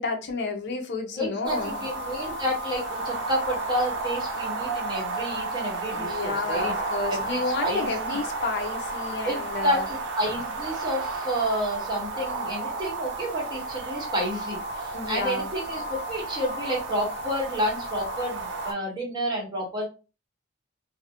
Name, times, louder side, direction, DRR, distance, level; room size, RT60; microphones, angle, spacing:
voice 1, 0.0-1.8 5.9-9.9 14.9-15.5, left 3 dB, 60° left, 0.5 m, -31 dB
voice 2, 1.2-6.7 7.1-7.9 9.2-19.9, equal, 20° right, 0.9 m, -30 dB
sound 1, 1.4-18.7, right 2 dB, 60° right, 0.6 m, -32 dB
2.3 x 2.0 x 2.7 m
head